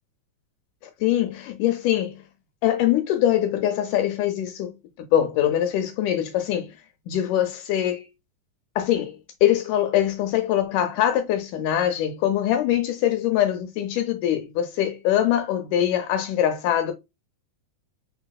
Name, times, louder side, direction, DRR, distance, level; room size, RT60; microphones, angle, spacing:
voice 1, 1.0-2.2 2.6-6.7 7.1-8.1 8.8-9.2 9.4-16.9, left 11 dB, 80° left, 2.0 m, -23 dB
4.8 x 4.0 x 2.2 m
omnidirectional pair, 4.0 m